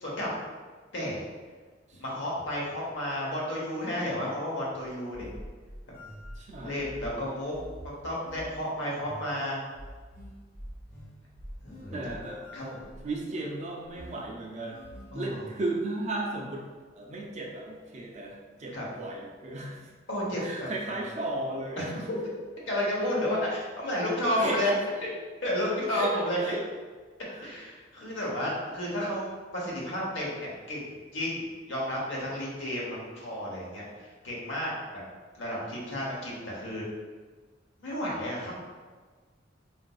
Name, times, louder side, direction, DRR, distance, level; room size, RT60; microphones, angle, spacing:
voice 1, 2.0-5.3 6.6-7.5 8.0-9.6 11.6-12.0 12.5-12.8 15.1-15.5 18.7-18.9 20.1-21.0 22.7-24.7 25.0-25.1 25.4-26.4 27.4-30.8 31.1-35.0 35.4-36.8 37.8-38.5, left 1 dB, 75° left, -4 dB, 0.9 m, -32 dB
sound 1, 4.8-15.1, equal, 50° left, 1.1 m, -46 dB
voice 2, 6.4-6.8 11.9-12.4 13.0-14.8 15.1-16.7 17.0-19.9 20.4-22.1 24.4-24.6 25.9-26.7 27.3-27.5, right 2 dB, 35° right, -1 dB, 0.5 m, -35 dB
3.8 x 2.5 x 2.3 m, 1.4 s
head